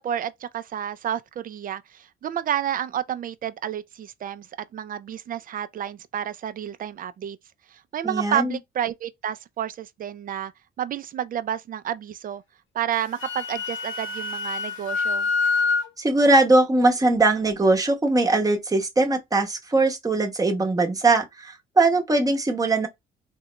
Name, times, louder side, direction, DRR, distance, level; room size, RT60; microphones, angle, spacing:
voice 1, 0.0-4.5 4.7-7.4 7.7-10.5 10.8-12.4 12.7-15.3, right 10 dB, 45° right, 0.4 m, -30 dB
voice 2, 8.0-8.6 16.0-22.9, right 2 dB, 15° right, 0.9 m, -21 dB
Wind instrument woodwind instrument, 12.9-15.9, left 4 dB, 75° left, 0.9 m, -26 dB
3.5 x 2.2 x 2.9 m
cardioid pair, 90°, 20 cm